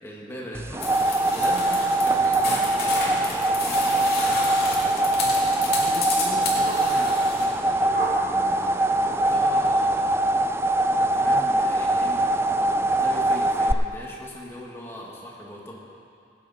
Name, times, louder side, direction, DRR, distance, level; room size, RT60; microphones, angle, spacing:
voice 1, 0.0-5.0 5.7-10.2 11.1-15.8, left 1 dB, 15° left, -4 dB, 1.9 m, -40 dB
sound 1, 0.5-13.7, right 2 dB, 15° right, 0.3 m, -22 dB
sound 2, 0.8-7.5, left 3 dB, 60° left, 2.5 m, -31 dB
sound 3, 6.6-7.3 7.8-9.3, right 1 dB, 75° right, 2.8 m, -40 dB
18.5 x 9.7 x 4.3 m, 2.5 s
head